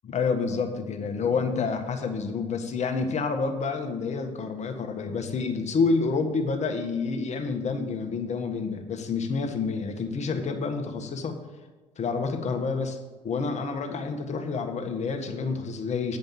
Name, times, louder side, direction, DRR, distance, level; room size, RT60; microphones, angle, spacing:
voice 1, 0.0-11.4 12.0-13.0 13.2-16.2, left 4 dB, 45° left, 5 dB, 1.4 m, -28 dB
9.7 x 5.2 x 7.3 m, 1.2 s
hypercardioid pair, 55°, 16 cm